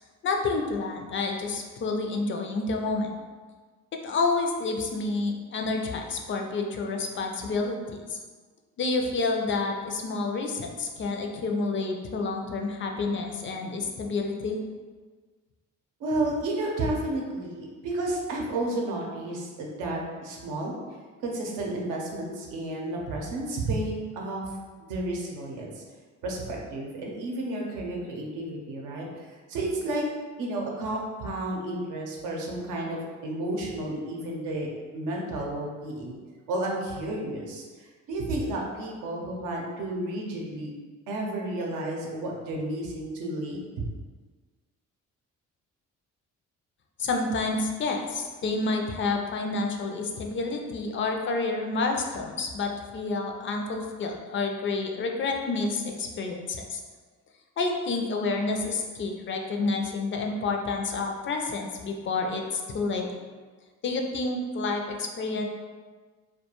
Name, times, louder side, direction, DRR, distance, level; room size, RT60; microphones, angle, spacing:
voice 1, 0.2-3.2 4.0-8.2 8.8-14.6 47.0-56.8 57.6-63.1 63.8-65.4, left 3 dB, 40° left, 2 dB, 0.4 m, -29 dB
voice 2, 16.0-20.8 21.2-24.5 24.8-25.8 26.2-29.1 29.5-30.0 30.4-34.7 34.9-36.2 36.5-40.7 41.1-43.6, right 1 dB, 90° right, -1 dB, 0.6 m, -32 dB
2.3 x 2.2 x 2.9 m, 1.4 s
cardioid pair, 90°, 30 cm